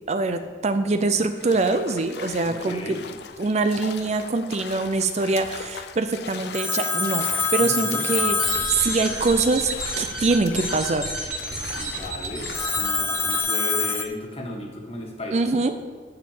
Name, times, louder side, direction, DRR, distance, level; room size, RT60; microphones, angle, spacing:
voice 1, 0.1-3.0 3.4-7.3 7.5-8.4 8.7-9.7 10.0-11.1 15.3-15.7, right 3 dB, 40° right, 9 dB, 0.4 m, -23 dB
sound 1, 1.4-12.9, left 6 dB, 65° left, 0.5 m, -40 dB
voice 2, 2.4-3.0 7.6-8.1 11.7-15.6, left 1 dB, 35° left, 1 dB, 1.6 m, -35 dB
Telephone, 6.5-9.6 12.5-14.0, left 5 dB, 15° left, 0.4 m, -25 dB
sound 2, 8.3-13.4, right 2 dB, 5° right, 2.0 m, -31 dB
10.5 x 4.4 x 7.4 m, 1.5 s
head